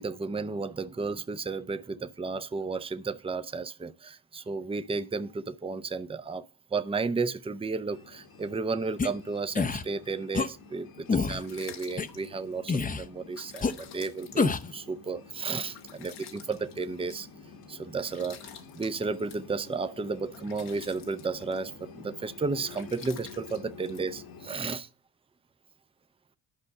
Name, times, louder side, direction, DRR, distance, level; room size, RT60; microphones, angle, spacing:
voice 1, 0.0-6.4 6.7-17.3 17.7-18.5 18.7-24.9, right 4 dB, 15° right, 0.6 m, -33 dB
sound 1, 7.9-24.6, left 5 dB, 65° left, 1.5 m, -50 dB
sound 2, 9.0-9.1 9.6-9.8 10.3-10.5 11.1-11.4 12.0-12.1 12.7-13.1 13.6-13.7 14.4-14.7, left 4 dB, 20° left, 0.7 m, -26 dB
sound 3, 11.0-24.8, left 8 dB, 85° left, 1.4 m, -52 dB
10.5 x 5.3 x 6.5 m
supercardioid pair, 70°, 38 cm